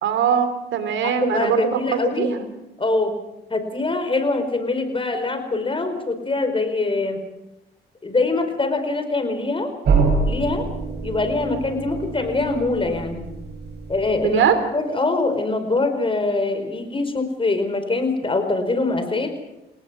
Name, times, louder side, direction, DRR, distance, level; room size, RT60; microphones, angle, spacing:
voice 1, 0.0-2.4 14.2-14.6, right 7 dB, 75° right, 10 dB, 3.3 m, -21 dB
voice 2, 1.0-2.3 2.8-3.1 3.5-7.2 8.0-9.7 10.3-10.7 11.0-13.3 13.9-14.4 14.7-19.3, left 3 dB, 25° left, 8 dB, 4.9 m, -23 dB
sound 1, 9.8-14.5, right 4 dB, 60° right, 7.3 m, -25 dB
29.5 x 19.0 x 6.2 m, 0.93 s
cardioid pair, 90°, 20 cm